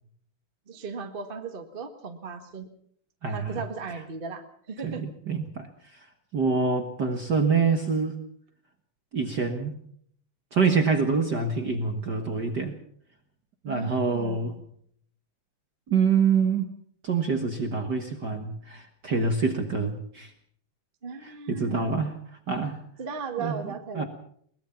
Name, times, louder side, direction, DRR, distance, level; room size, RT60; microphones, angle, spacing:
voice 1, 0.7-2.7 3.3-5.0 13.6-14.6 21.0-22.0 23.0-24.0, right 5 dB, 25° right, 6 dB, 1.2 m, -36 dB
voice 2, 3.2-3.6 4.8-6.1 6.3-8.2 9.1-9.8 10.5-12.8 13.6-14.6 15.9-16.7 17.0-20.3 21.2-22.1 22.5-22.8 23.4-24.0, right 5 dB, 45° right, 5 dB, 1.5 m, -26 dB
22.0 x 20.0 x 5.8 m, 0.63 s
omnidirectional pair, 3.6 m